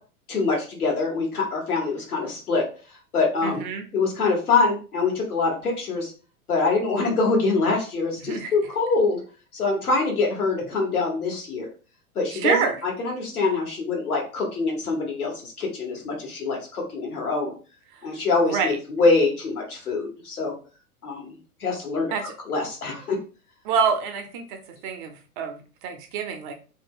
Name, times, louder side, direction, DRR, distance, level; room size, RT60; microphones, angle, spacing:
voice 1, 0.3-2.6 3.1-3.6 3.9-6.1 6.5-9.2 9.5-11.7 12.1-17.5 18.0-20.5 21.0-21.3 21.6-23.2, left 3 dB, 80° left, -1 dB, 1.3 m, -24 dB
voice 2, 3.4-3.9 8.2-8.5 12.3-12.8 17.9-18.0 18.5-18.8 22.1-22.3 23.6-26.5, right 5 dB, 35° right, 6 dB, 0.5 m, -27 dB
2.7 x 2.1 x 3.6 m, 0.36 s
figure-of-eight pair, 95°, 44 cm